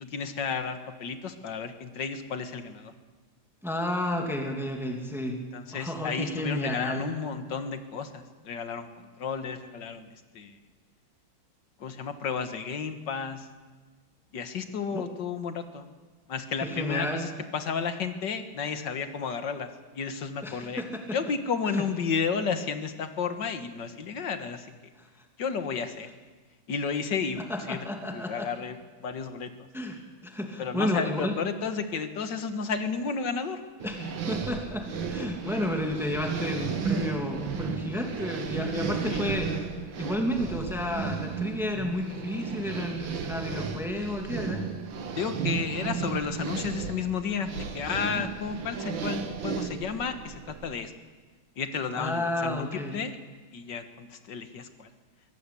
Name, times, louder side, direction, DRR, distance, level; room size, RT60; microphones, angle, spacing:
voice 1, 0.0-2.9 5.5-10.6 11.8-13.5 14.3-15.9 16.3-19.7 20.0-20.8 21.1-24.7 25.4-26.1 26.7-27.4 27.7-29.7 30.6-33.6 39.0-39.4 41.7-42.0 45.2-50.9 51.6-53.2 53.5-54.9, left 6 dB, 60° left, 9 dB, 2.1 m, -32 dB
voice 2, 3.6-5.4 5.7-7.1 14.9-15.0 16.6-17.2 20.4-20.9 21.7-21.8 27.5-28.5 29.7-30.0 30.2-31.3 33.8-34.0 34.3-39.5 40.0-44.7 52.0-53.0, left 1 dB, ahead, 2 dB, 2.5 m, -31 dB
sound 1, 33.8-50.7, right 6 dB, 70° right, 2.2 m, -34 dB
23.0 x 18.0 x 8.4 m, 1.4 s
omnidirectional pair, 2.2 m